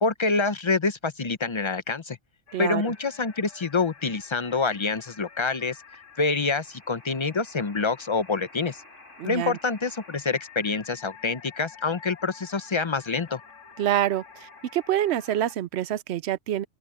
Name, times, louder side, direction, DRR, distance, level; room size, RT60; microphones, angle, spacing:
voice 1, 0.0-2.2 2.6-5.8 6.2-8.8 9.2-13.4, left 4 dB, 30° left, 0.6 m, -26 dB
sound 1, 2.5-15.5, left 5 dB, 80° left, 4.3 m, -49 dB
voice 2, 2.5-2.9 9.2-9.6 13.8-16.6, right 12 dB, 65° right, 0.8 m, -27 dB
open air
omnidirectional pair, 1.3 m